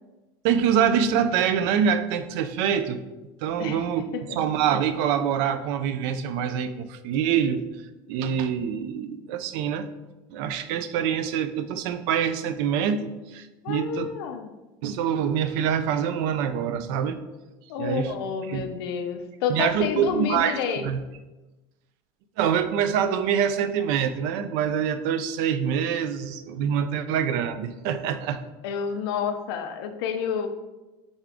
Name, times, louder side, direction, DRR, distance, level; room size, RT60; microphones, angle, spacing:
voice 1, 0.4-3.0 3.4-7.7 8.1-9.9 10.3-14.1 14.8-17.2 17.8-18.1 18.5-18.7 19.5-21.0 22.4-28.4, right 8 dB, 65° right, 11 dB, 0.4 m, -25 dB
voice 2, 13.6-14.5 17.7-20.8 28.6-30.5, left 7 dB, 90° left, 7 dB, 0.5 m, -29 dB
3.7 x 3.5 x 3.4 m, 1.1 s
supercardioid pair, 140°, 12 cm